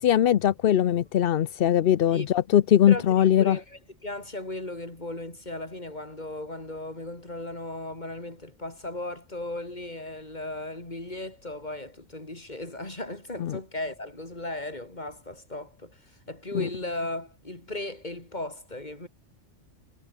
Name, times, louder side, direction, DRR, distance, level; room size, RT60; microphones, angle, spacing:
voice 1, 0.0-3.6 13.4-13.6, left 10 dB, 55° left, 0.8 m, -21 dB
voice 2, 2.9-16.0 16.3-19.1, left 2 dB, 35° left, 4.1 m, -36 dB
omnidirectional pair, 1.3 m